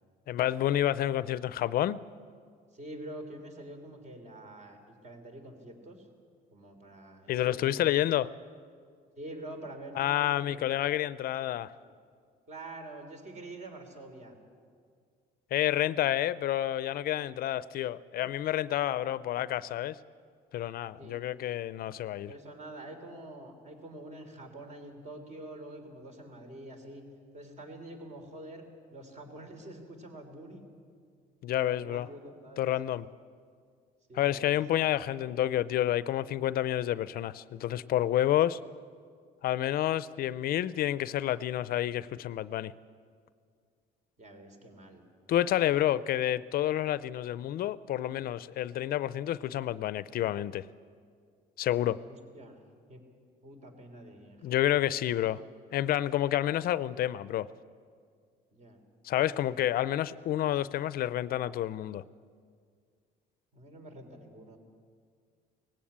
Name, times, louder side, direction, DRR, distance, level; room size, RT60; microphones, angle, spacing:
voice 1, 0.3-2.0 7.3-8.3 10.0-11.7 15.5-20.0 20.5-22.3 31.4-32.1 32.6-33.1 34.1-38.6 39.4-42.7 45.3-50.6 51.6-52.0 54.4-55.4 55.7-57.5 59.0-62.0, left 12 dB, 60° left, 17 dB, 0.5 m, -29 dB
voice 2, 2.7-6.1 6.5-7.9 9.2-10.6 11.8-11.9 12.5-14.3 21.0-21.2 22.3-27.1 27.3-28.7 28.9-30.6 31.6-32.7 34.1-34.6 44.2-45.0 52.1-52.6 52.9-53.0 53.4-54.6 58.5-58.8 59.4-59.5 63.5-64.6, right 1 dB, 45° right, 5 dB, 3.5 m, -46 dB
18.5 x 16.0 x 8.7 m, 2.1 s
cardioid pair, 110°, 17 cm